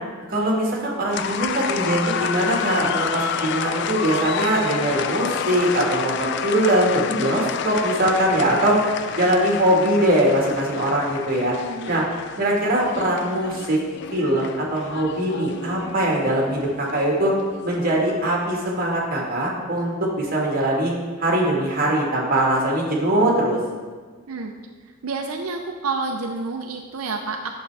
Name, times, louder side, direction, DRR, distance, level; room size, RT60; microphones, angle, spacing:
voice 1, 0.3-8.9 9.2-11.5 11.9-12.0 12.4-13.8 14.1-17.3 17.6-20.9 21.2-23.6, right 1 dB, 40° right, -3 dB, 1.7 m, -21 dB
sound 1, 1.1-18.8, left 7 dB, 55° left, 0.3 m, -30 dB
voice 2, 11.6-12.1 24.3-24.5 24.9-27.6, right 3 dB, 85° right, 3 dB, 0.6 m, -29 dB
9.2 x 6.7 x 3.4 m, 1.5 s
head